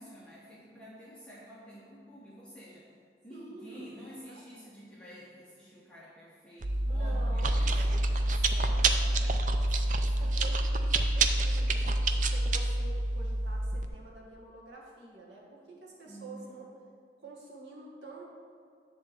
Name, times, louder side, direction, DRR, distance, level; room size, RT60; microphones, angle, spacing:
voice 1, 0.0-2.9 3.2-10.4 16.0-16.6, equal, 5° left, -8 dB, 1.1 m, -50 dB
voice 2, 3.3-4.4 6.8-8.1 8.5-8.9 10.2-16.7 17.2-18.2, right 3 dB, 90° right, -4 dB, 1.9 m, -48 dB
Chewing mastication, 6.6-13.9, right 2 dB, 45° right, 0.5 m, -27 dB
10.5 x 3.7 x 7.1 m, 2.3 s
head